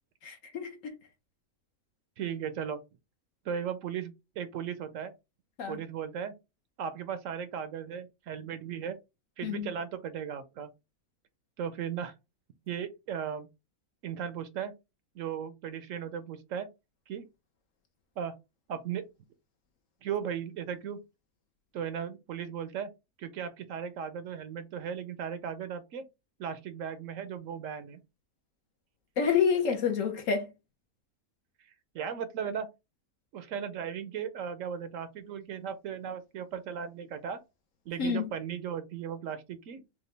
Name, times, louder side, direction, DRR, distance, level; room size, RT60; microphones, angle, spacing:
voice 1, 0.2-0.9 5.6-5.8 9.4-9.7 29.2-30.5 38.0-38.3, left 6 dB, 65° left, 1.2 m, -28 dB
voice 2, 2.2-2.8 3.5-5.1 5.7-6.3 6.8-9.0 9.4-10.7 11.6-12.1 12.7-13.5 14.0-14.7 15.2-16.7 17.1-17.2 18.2-18.3 18.7-19.1 20.0-21.0 21.7-22.9 23.2-26.0 26.4-28.0 31.9-32.7 33.3-37.4 37.9-39.8, right 8 dB, 70° right, 0.9 m, -36 dB
4.9 x 2.3 x 3.2 m
omnidirectional pair, 1.5 m